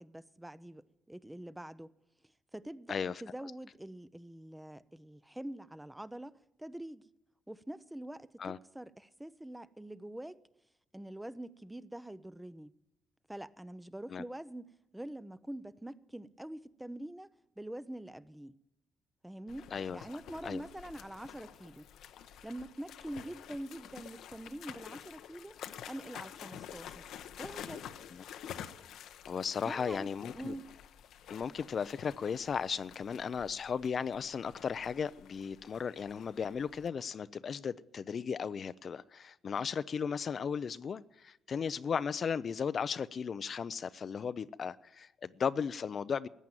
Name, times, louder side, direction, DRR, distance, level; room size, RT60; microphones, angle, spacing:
voice 1, 0.0-1.9 2.5-7.1 7.5-10.4 10.9-12.7 13.3-17.3 17.6-18.6 19.2-21.8 22.4-25.6 25.9-27.0 27.4-27.9 29.7-30.1 30.3-30.7, right 1 dB, 5° right, 0.6 m, -45 dB
sound 1, 19.5-36.9, left 9 dB, 80° left, 0.9 m, -49 dB
voice 2, 29.2-30.5 31.3-46.3, left 6 dB, 50° left, 0.5 m, -36 dB
14.5 x 9.3 x 9.0 m
cardioid pair, 90°, 0 cm